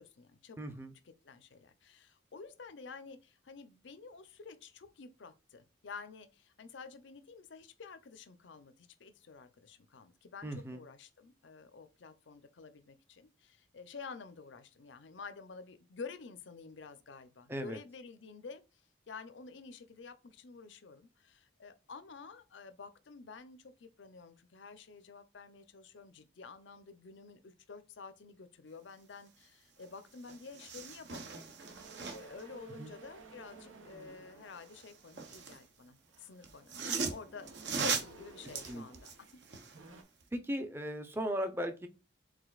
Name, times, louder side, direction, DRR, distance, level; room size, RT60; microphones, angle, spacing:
voice 1, 0.0-0.6 1.0-18.6 19.1-31.5 31.8-37.5 37.8-39.1, left 4 dB, 70° left, 0.6 m, -50 dB
voice 2, 0.6-0.9 10.4-10.8 17.5-17.8 32.8-32.9 38.7-38.8 40.3-41.9, equal, 10° right, 0.5 m, -37 dB
sound 1, 29.8-29.9 30.2-32.4 34.6-35.6 36.4-39.8 40.2-40.3, right 5 dB, 65° right, 0.8 m, -39 dB
sound 2, 31.6-35.4 36.0-39.3 39.6-40.0, right 4 dB, 85° right, 1.0 m, -55 dB
4.9 x 3.8 x 2.4 m
head